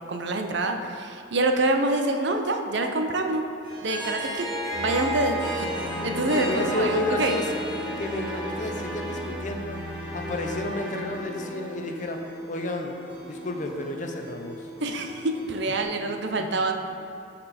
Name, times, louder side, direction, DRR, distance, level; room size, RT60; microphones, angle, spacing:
voice 1, 0.1-3.4 3.8-4.5 4.8-5.7 6.0-7.4 14.8-16.7, right 2 dB, 65° right, 5 dB, 0.6 m, -26 dB
Harp, 3.6-9.4, equal, 25° right, 2.1 m, -32 dB
sound 1, 4.7-15.8, equal, 5° right, 1.3 m, -37 dB
voice 2, 6.3-7.6 8.0-9.8 10.1-12.9 13.3-14.7 16.5-16.6, left 2 dB, 40° left, 3 dB, 0.7 m, -31 dB
13.0 x 4.3 x 4.3 m, 2.6 s
head